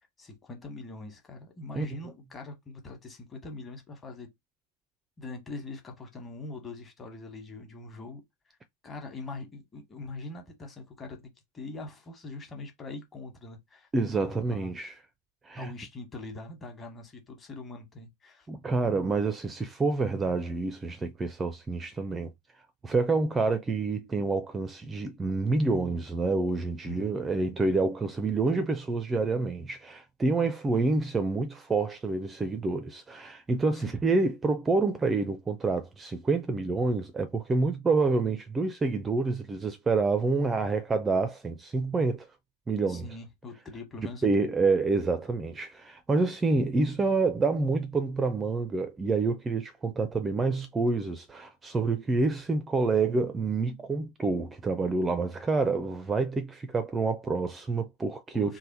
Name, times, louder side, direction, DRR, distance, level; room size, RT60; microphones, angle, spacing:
voice 1, 0.2-4.3 5.2-8.2 8.8-14.7 15.6-18.5 26.9-27.2 33.7-34.0 42.9-44.5 58.3-58.6, left 3 dB, 20° left, 1.2 m, -43 dB
voice 2, 13.9-14.9 15.4-15.7 18.5-22.3 22.8-42.3 42.7-43.1 44.2-58.6, right 3 dB, 15° right, 0.4 m, -28 dB
3.3 x 2.1 x 4.0 m
figure-of-eight pair, 90°, 0 cm